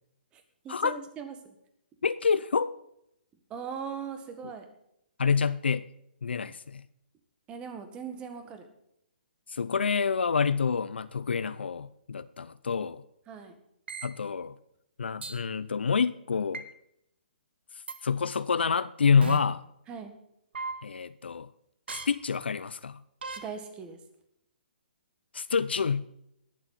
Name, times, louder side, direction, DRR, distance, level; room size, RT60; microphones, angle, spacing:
voice 1, 0.3-1.5 3.5-4.7 7.5-8.7 13.3-13.6 19.9-20.1 23.4-24.0, right 6 dB, 20° right, 7 dB, 1.6 m, -40 dB
voice 2, 2.0-2.8 5.2-5.9 6.2-6.8 9.5-13.0 14.0-14.6 15.0-16.6 18.0-19.6 20.8-21.5 21.9-23.0 25.3-26.1, left 5 dB, 85° left, 14 dB, 0.5 m, -27 dB
sound 1, 13.9-14.1 15.2-15.4 16.5-16.7 17.9-18.0 19.2-19.4 20.5-20.7 21.9-22.1 23.2-23.4, right 4 dB, 80° right, 1.7 m, -35 dB
20.0 x 7.3 x 4.1 m, 0.76 s
hypercardioid pair, 145°, 6 cm